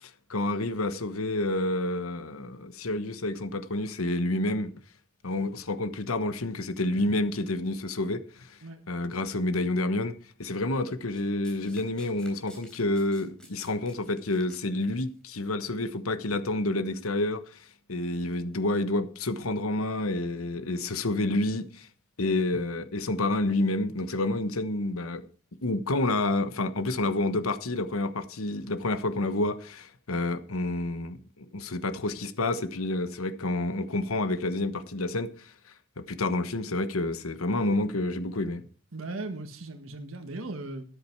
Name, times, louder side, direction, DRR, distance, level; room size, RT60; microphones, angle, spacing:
voice 1, 0.3-4.7 5.2-8.5 8.9-10.1 10.4-17.4 17.9-21.9 22.2-25.2 25.6-35.5 36.0-38.7, left 2 dB, 90° left, 1.2 m, -29 dB
Domestic sounds home sounds, 11.1-15.1 16.0-16.1, left 1 dB, 5° left, 3.7 m, -53 dB
voice 2, 38.9-40.8, right 2 dB, 80° right, 1.5 m, -37 dB
13.0 x 10.5 x 4.6 m
head